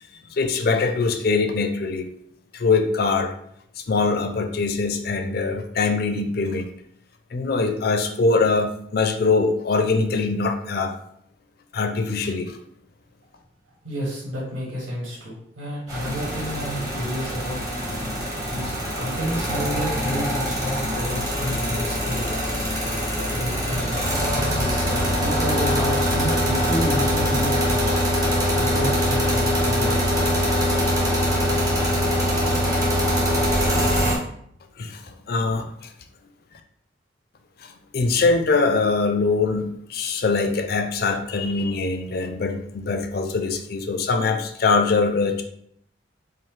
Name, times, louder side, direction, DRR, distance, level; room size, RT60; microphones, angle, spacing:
voice 1, 0.3-2.1 2.5-3.3 3.8-6.7 7.3-10.9 11.7-12.6 34.8-35.9 37.6-45.4, left 4 dB, 50° left, 7 dB, 0.4 m, -23 dB
voice 2, 13.8-17.6 18.5-22.6 23.3-24.0 24.3-28.0 28.6-30.3, equal, 90° right, -5 dB, 1.4 m, -30 dB
sound 1, 15.9-34.2, equal, 20° right, 0.9 m, -23 dB
5.1 x 2.0 x 3.6 m, 0.70 s
head